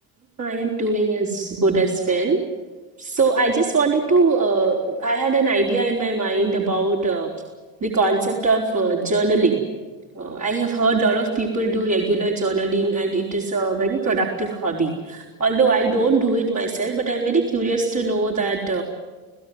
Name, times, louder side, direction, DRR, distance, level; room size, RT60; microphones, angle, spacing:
voice 1, 0.4-2.4 3.0-7.3 7.8-9.6 10.1-18.8, right 3 dB, 35° right, -1 dB, 4.6 m, -21 dB
29.5 x 16.5 x 9.6 m, 1.4 s
hypercardioid pair, 70°, 45 cm